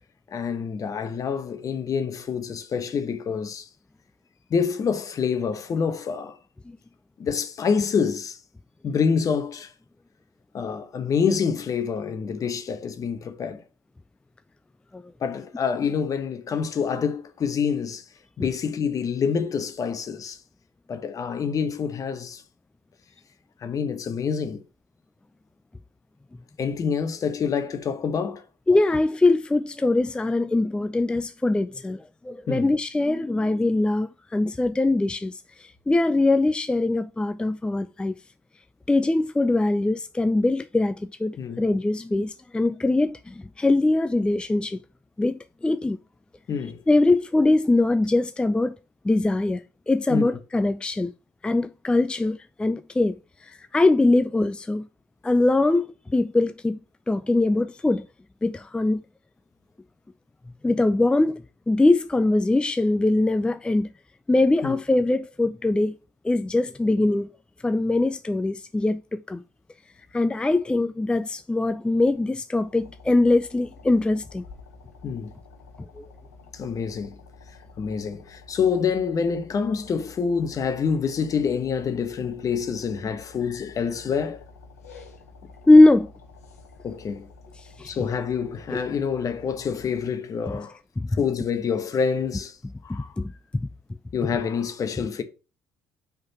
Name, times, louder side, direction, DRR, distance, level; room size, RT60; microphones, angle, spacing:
voice 1, 0.3-3.7 4.5-6.4 7.2-8.4 8.8-9.7 10.5-13.6 15.2-18.0 18.4-20.4 20.9-22.4 23.6-24.6 26.6-28.4 32.5-32.7 41.4-41.6 46.5-46.8 50.1-50.4 64.6-64.8 75.0-75.3 76.5-77.2 77.8-84.4 86.8-87.3 87.8-90.8 91.2-92.6 92.8-93.1 94.1-95.2, left 6 dB, 45° left, 1.1 m, -27 dB
voice 2, 28.7-38.2 38.9-44.8 45.2-46.0 46.9-48.8 49.0-51.1 51.4-54.9 55.2-56.8 57.1-58.1 58.4-59.0 60.6-63.9 64.3-65.9 66.2-67.3 67.6-69.4 70.1-74.4 76.0-76.1 85.7-86.1 87.8-88.0 88.7-88.8 90.5-90.6 91.0-91.2 92.9-93.7, left 2 dB, 10° left, 0.4 m, -22 dB
sound 1, 72.6-90.1, left 3 dB, 85° left, 1.0 m, -49 dB
5.2 x 4.0 x 5.4 m
hypercardioid pair, 55°, 8 cm